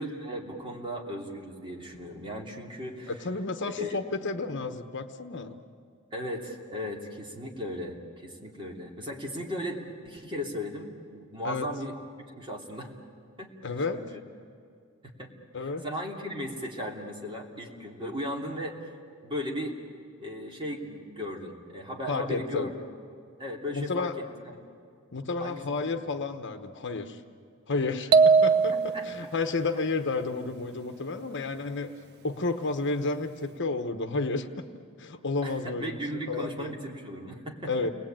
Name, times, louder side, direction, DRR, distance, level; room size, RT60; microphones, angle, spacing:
voice 1, 0.0-3.1 3.7-4.0 6.1-12.0 12.4-12.9 13.4-14.2 15.2-15.3 15.8-18.8 19.2-19.8 20.2-22.8 23.4-24.6 25.4-25.6 28.9-29.0 35.4-37.7, left 1 dB, 25° right, -1 dB, 3.1 m, -36 dB
voice 2, 3.1-5.6 11.4-11.7 13.6-14.0 15.5-15.8 22.1-22.7 23.7-24.1 25.1-27.2 27.7-34.7 35.0-36.0 36.3-36.7 37.6-37.9, left 3 dB, 55° left, 8 dB, 1.1 m, -31 dB
sound 1, 28.1-29.3, right 5 dB, 50° right, 0.8 m, -20 dB
30.0 x 21.5 x 9.0 m, 2.3 s
head